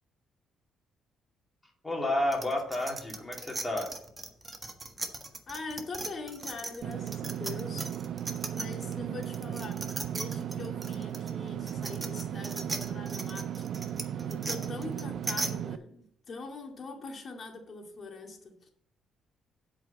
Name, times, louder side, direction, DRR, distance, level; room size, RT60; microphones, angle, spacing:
voice 1, 1.8-3.9, left 1 dB, 15° left, 0 dB, 3.0 m, -31 dB
sound 1, 2.3-8.9 9.2-15.5, right 2 dB, 20° right, 1.5 m, -38 dB
voice 2, 5.5-7.9 8.5-13.6 14.2-18.7, left 3 dB, 45° left, 2 dB, 2.1 m, -43 dB
Engine / Mechanisms, 6.8-15.8, right 10 dB, 65° right, 0.5 m, -36 dB
7.9 x 5.2 x 7.1 m, 0.68 s
cardioid pair, 90°, 0 cm